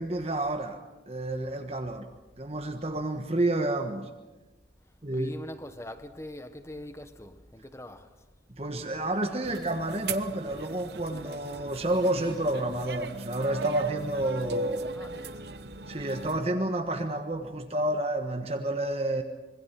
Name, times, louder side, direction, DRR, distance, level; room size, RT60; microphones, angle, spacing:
voice 1, 0.0-2.1 2.4-4.1 5.0-5.3 8.6-14.9 15.9-19.2, right 1 dB, 35° right, 1.4 m, -30 dB
voice 2, 4.8-8.3 14.9-15.5, left 1 dB, 15° left, 1.3 m, -43 dB
sound 1, 9.4-16.4, right 3 dB, 60° right, 1.2 m, -37 dB
26.0 x 22.5 x 5.9 m
head